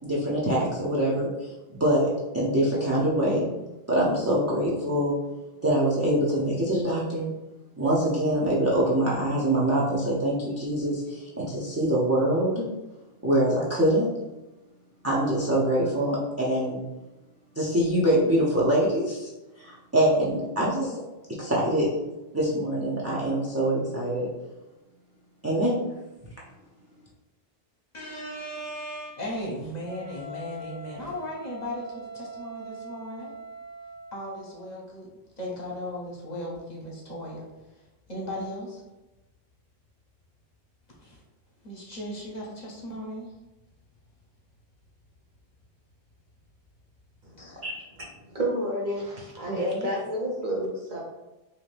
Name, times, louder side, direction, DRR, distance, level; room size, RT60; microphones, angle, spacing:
voice 1, 0.0-1.5 1.8-3.5 3.9-5.2 5.6-7.3 7.8-12.7 13.2-14.1 15.0-16.8 17.6-19.3 19.6-21.0 21.4-21.9 22.3-24.3 25.4-25.8, right 1 dB, 25° right, -7 dB, 0.3 m, -24 dB
voice 2, 27.9-33.3 34.1-35.1 35.4-38.8 41.0-41.2 41.6-43.3 47.4-47.6 49.5-49.9, equal, 45° left, -4 dB, 0.8 m, -37 dB
Wind instrument woodwind instrument, 29.9-34.6, right 2 dB, 75° right, 0.9 m, -42 dB
voice 3, 47.2-47.8 48.3-51.0, equal, 55° right, -2 dB, 0.7 m, -30 dB
2.7 x 2.5 x 3.2 m, 1.0 s
omnidirectional pair, 1.0 m